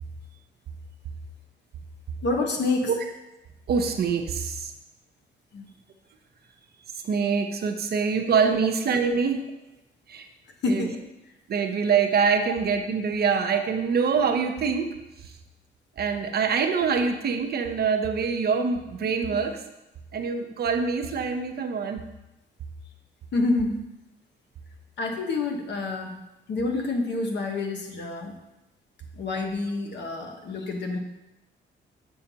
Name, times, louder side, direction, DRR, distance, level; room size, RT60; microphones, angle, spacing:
voice 1, 2.2-2.9 5.5-5.7 10.6-11.0 23.3-23.8 25.0-26.2 26.5-28.4 29.1-31.0, left 3 dB, 60° left, 3 dB, 1.1 m, -27 dB
voice 2, 3.7-4.7 7.0-9.4 10.1-10.3 10.7-10.9 11.5-15.3 16.0-19.6 20.1-22.0, right 5 dB, 55° right, 6 dB, 0.7 m, -25 dB
7.6 x 5.6 x 2.8 m, 0.96 s
cardioid pair, 90°, 20 cm